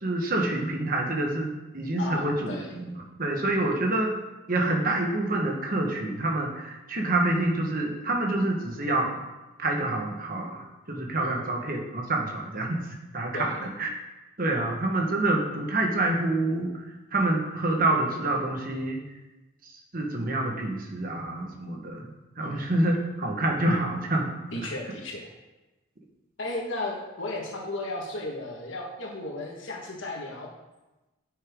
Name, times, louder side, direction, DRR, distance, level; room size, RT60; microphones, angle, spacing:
voice 1, 0.0-4.1 4.5-9.2 9.6-12.8 13.1-13.9 14.4-16.7 17.1-19.0 19.9-24.3, right 2 dB, 45° right, 1 dB, 1.3 m, -27 dB
voice 2, 2.0-2.7 3.5-3.6 11.2-11.4 13.3-13.6 22.4-22.6 24.5-25.3 26.4-30.5, left 2 dB, 70° left, -1 dB, 1.5 m, -35 dB
9.9 x 6.4 x 3.7 m, 1.1 s
head